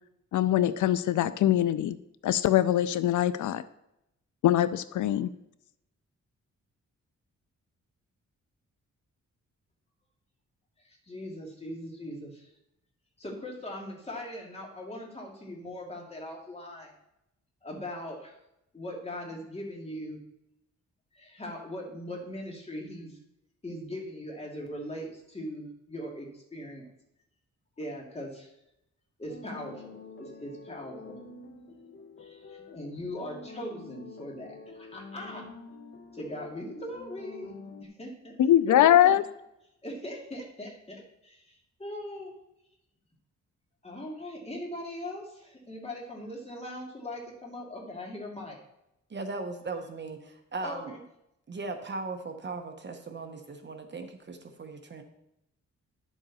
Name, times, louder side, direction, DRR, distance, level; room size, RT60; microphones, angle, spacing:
voice 1, 0.3-2.0 2.2-3.6 4.4-5.3 38.4-39.2, left 12 dB, 85° left, 15 dB, 0.5 m, -22 dB
voice 2, 10.8-12.5 13.2-16.9 17.6-18.4 18.7-20.2 21.1-23.2 23.6-26.8 27.8-28.5 29.2-31.2 32.2-35.5 36.1-37.5 37.8-38.3 38.7-39.2 39.8-42.3 43.8-48.6 50.6-51.0, left 1 dB, 20° left, -1 dB, 2.4 m, -40 dB
sound 1, 29.3-37.8, left 4 dB, 40° left, 1.0 m, -47 dB
voice 3, 49.1-51.0 51.5-55.0, right 3 dB, 40° right, 6 dB, 1.0 m, -38 dB
10.5 x 7.2 x 4.1 m, 0.83 s
wide cardioid pair, 120°, 29 cm